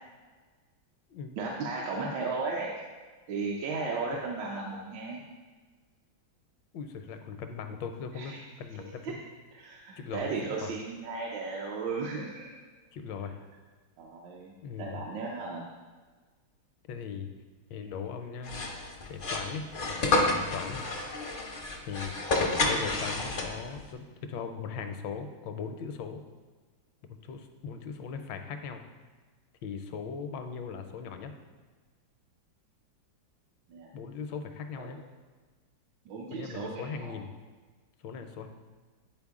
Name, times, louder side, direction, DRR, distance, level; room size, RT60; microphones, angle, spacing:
voice 1, 1.4-2.8 3.3-5.2 8.1-8.4 9.0-9.1 9.6-12.5 14.0-15.7 22.6-22.9 33.7-33.9 34.8-35.0 36.1-37.2, right 4 dB, 75° right, -2 dB, 1.4 m, -35 dB
voice 2, 6.7-9.2 10.0-10.7 12.9-13.4 14.6-15.0 16.9-17.3 17.7-18.6 19.1-20.8 21.9-22.1 22.7-26.2 27.1-28.8 29.6-31.3 33.9-35.0 36.3-37.3 38.0-38.5, left 6 dB, 75° left, 7 dB, 1.3 m, -39 dB
sound 1, 18.4-23.8, left 2 dB, 55° left, 0.5 m, -30 dB
9.7 x 4.3 x 3.6 m, 1.4 s
omnidirectional pair, 2.1 m